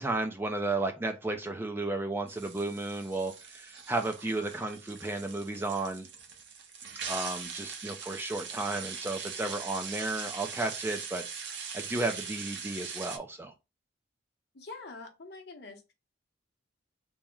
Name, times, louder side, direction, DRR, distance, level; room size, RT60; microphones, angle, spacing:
voice 1, 0.0-6.1 7.1-13.5, right 2 dB, 10° right, 0.3 m, -33 dB
sound 1, 2.3-13.2, right 6 dB, 60° right, 0.8 m, -41 dB
voice 2, 14.5-15.9, left 3 dB, 55° left, 0.8 m, -45 dB
3.5 x 2.1 x 4.3 m
head